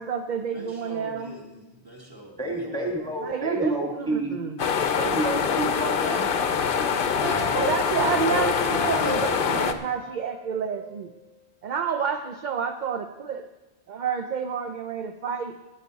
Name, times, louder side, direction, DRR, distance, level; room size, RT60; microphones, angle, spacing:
voice 1, 0.0-1.3 3.2-4.6 7.5-11.1 11.6-13.5 13.9-15.6, right 7 dB, 50° right, 6 dB, 0.6 m, -29 dB
voice 2, 0.5-3.1 7.1-7.7 8.8-9.8, right 1 dB, 20° right, -2 dB, 2.6 m, -39 dB
voice 3, 2.4-4.4 5.0-6.4, right 2 dB, 5° left, -1 dB, 1.5 m, -29 dB
sound 1, 4.6-9.7, left 6 dB, 60° left, 0.8 m, -25 dB
sound 2, 7.0-11.2, left 1 dB, 90° right, 4.6 m, -33 dB
15.0 x 9.3 x 4.0 m, 1.1 s
omnidirectional pair, 1.1 m